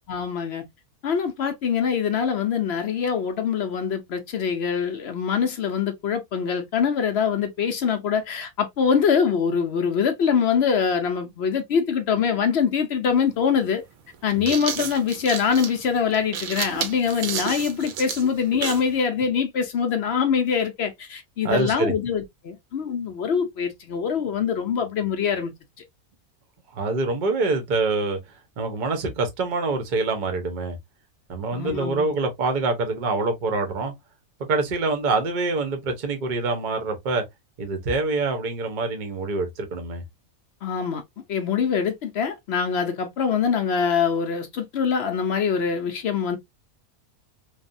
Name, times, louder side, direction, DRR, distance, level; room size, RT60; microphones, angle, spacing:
voice 1, 0.1-0.6 1.0-13.8 14.2-25.5 31.5-32.1 40.6-41.0 41.3-46.4, left 6 dB, 65° left, 0.7 m, -24 dB
sound 1, 13.1-13.2 14.1-18.9, right 7 dB, 70° right, 1.0 m, -31 dB
voice 2, 21.4-21.9 26.7-28.2 28.6-30.8 31.3-33.9 34.5-37.2 37.6-40.0, right 3 dB, 45° right, 0.7 m, -25 dB
3.2 x 2.0 x 2.5 m
omnidirectional pair, 1.6 m